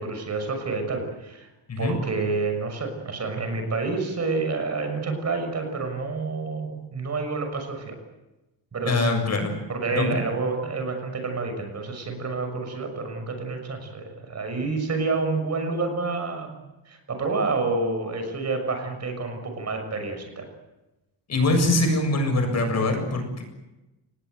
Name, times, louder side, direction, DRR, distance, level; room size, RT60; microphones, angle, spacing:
voice 1, 0.0-1.5 1.8-8.0 8.7-9.0 9.7-16.6 16.9-20.5, right 3 dB, 35° right, 6 dB, 6.5 m, -28 dB
voice 2, 8.8-9.5 10.0-10.2 21.3-23.4, left 2 dB, 35° left, 5 dB, 7.4 m, -23 dB
29.0 x 20.0 x 8.1 m, 1.0 s
cardioid pair, 160°, 43 cm